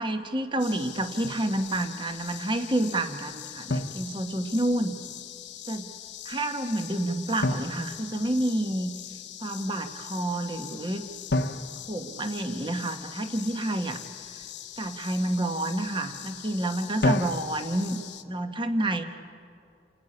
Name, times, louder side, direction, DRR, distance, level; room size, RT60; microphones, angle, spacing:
voice 1, 0.0-5.0 5.7-5.9 6.2-8.9 9.4-11.1 11.9-14.0 14.8-18.0 18.3-19.0, right 1 dB, 25° right, 7 dB, 1.2 m, -29 dB
sound 1, 0.6-18.2, left 12 dB, 85° left, 1.2 m, -43 dB
Drum, 1.2-1.5 3.7-4.8 7.4-8.8 11.3-13.0 17.0-18.0, left 1 dB, 70° left, 1.1 m, -31 dB
28.0 x 15.0 x 9.8 m, 2.4 s
head